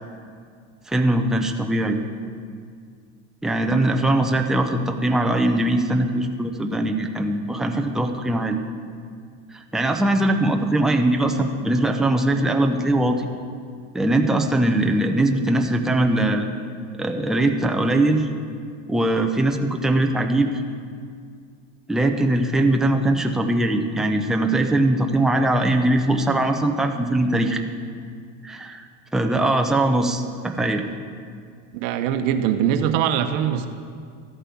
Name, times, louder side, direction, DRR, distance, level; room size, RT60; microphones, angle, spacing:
voice 1, 0.9-2.0 3.4-8.6 9.5-13.3 13.9-16.5 17.0-18.3 18.9-20.6 21.9-27.6 28.4-28.9 29.1-30.8, right 1 dB, ahead, 4 dB, 0.7 m, -21 dB
voice 2, 31.7-33.7, right 9 dB, 75° right, 8 dB, 0.9 m, -22 dB
13.0 x 5.6 x 8.3 m, 2.2 s
supercardioid pair, 110°, 39 cm